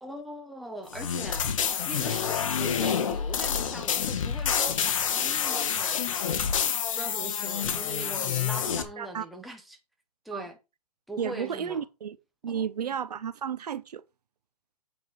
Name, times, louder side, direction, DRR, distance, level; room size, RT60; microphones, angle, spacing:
voice 1, 0.0-1.4 1.9-6.1 6.9-9.8 10.2-10.6 11.1-11.8 12.5-13.0, right 1 dB, ahead, 0.6 m, -41 dB
sound 1, 0.9-8.8, left 7 dB, 50° left, 1.6 m, -28 dB
voice 2, 11.2-12.2 12.4-14.0, right 8 dB, 75° right, 0.9 m, -32 dB
8.7 x 5.0 x 5.8 m
hypercardioid pair, 165°, 21 cm